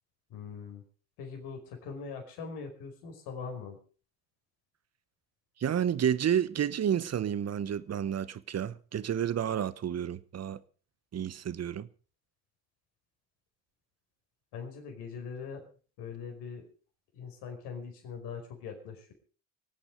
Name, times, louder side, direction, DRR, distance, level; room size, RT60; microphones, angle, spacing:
voice 1, 0.3-0.8 1.2-3.8 14.5-15.6 16.0-16.6 17.1-19.1, left 5 dB, 70° left, 4.9 m, -41 dB
voice 2, 5.6-10.6 11.1-11.9, right 9 dB, 40° right, 1.1 m, -30 dB
25.0 x 8.7 x 5.1 m
hypercardioid pair, 60°, 41 cm